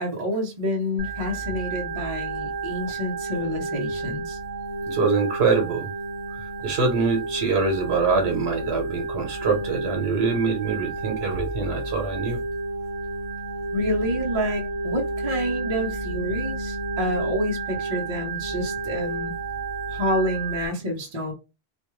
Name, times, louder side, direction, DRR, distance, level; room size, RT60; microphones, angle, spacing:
voice 1, 0.0-4.4 13.7-19.3 19.9-21.3, equal, 40° right, 0.7 m, -28 dB
Organ, 1.0-20.7, right 3 dB, 15° right, 1.3 m, -31 dB
voice 2, 4.9-5.9 6.4-12.4, right 4 dB, 75° right, 1.1 m, -24 dB
2.4 x 2.3 x 3.0 m
omnidirectional pair, 1.1 m